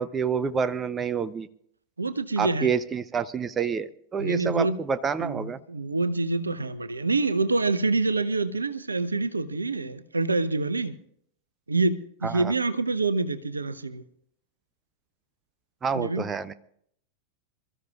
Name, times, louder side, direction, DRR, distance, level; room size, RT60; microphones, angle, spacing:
voice 1, 0.0-1.5 2.4-5.6 12.2-12.5 15.8-16.5, right 6 dB, 20° right, 0.6 m, -28 dB
voice 2, 2.0-2.7 4.2-4.8 5.2-11.0 11.7-14.0 15.9-16.3, right 3 dB, 80° right, 0.8 m, -26 dB
27.5 x 14.0 x 2.4 m
figure-of-eight pair, 90°, 0 cm